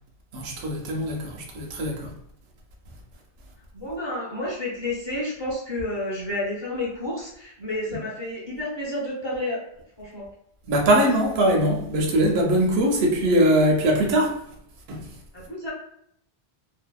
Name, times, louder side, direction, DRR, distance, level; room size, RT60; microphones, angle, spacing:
voice 1, 0.3-2.1 10.7-14.4 14.9-15.1, right 1 dB, 75° right, 0.8 m, -21 dB
voice 2, 3.7-9.6 10.0-10.3 15.3-15.7, left 1 dB, 30° left, 0.7 m, -30 dB
2.6 x 2.0 x 2.3 m
omnidirectional pair, 1.1 m